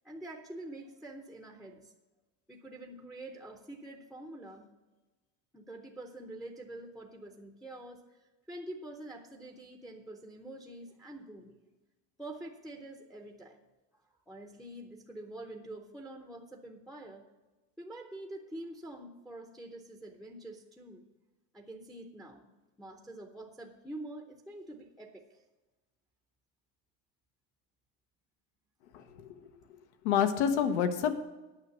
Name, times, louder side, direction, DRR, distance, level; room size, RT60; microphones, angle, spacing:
voice 1, 0.0-1.9 2.5-4.7 5.5-8.0 8.5-11.6 12.2-13.6 14.3-17.2 17.8-21.0 21.5-22.5 22.8-25.4, right 1 dB, ahead, 3 dB, 0.7 m, -46 dB
voice 2, 28.9-29.5 30.0-31.1, left 8 dB, 85° left, 9 dB, 1.3 m, -28 dB
9.4 x 6.2 x 8.1 m, 1.2 s
cardioid pair, 155°, 34 cm